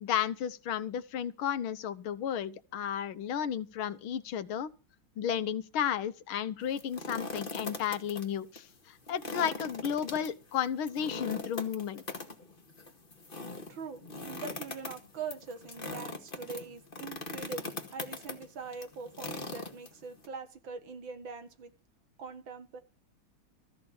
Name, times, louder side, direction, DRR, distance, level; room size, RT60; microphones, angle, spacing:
voice 1, 0.0-4.7 5.2-12.0, left 9 dB, 75° left, 1.7 m, -33 dB
sound 1, 6.6-8.2 8.5-8.6 9.1-20.3, left 3 dB, 25° left, 1.9 m, -41 dB
voice 2, 13.7-21.7 22.2-22.8, right 5 dB, 65° right, 2.3 m, -43 dB
14.5 x 5.7 x 8.7 m
omnidirectional pair, 2.3 m